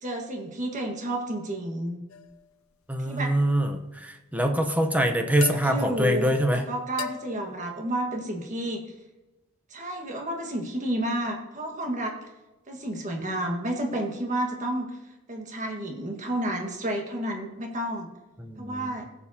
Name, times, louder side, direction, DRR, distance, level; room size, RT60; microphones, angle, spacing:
voice 1, 0.0-2.0 3.0-3.3 5.7-8.8 9.7-12.1 12.7-14.9 15.3-18.1 18.6-19.0, right 1 dB, 35° right, 2 dB, 1.6 m, -30 dB
sound 1, 2.1-2.5 5.4-6.0 7.0-7.6, left 10 dB, 75° left, 0.6 m, -38 dB
voice 2, 2.9-6.6 18.4-19.1, right 1 dB, 5° right, 5 dB, 0.8 m, -25 dB
16.5 x 7.3 x 2.8 m, 1.0 s
head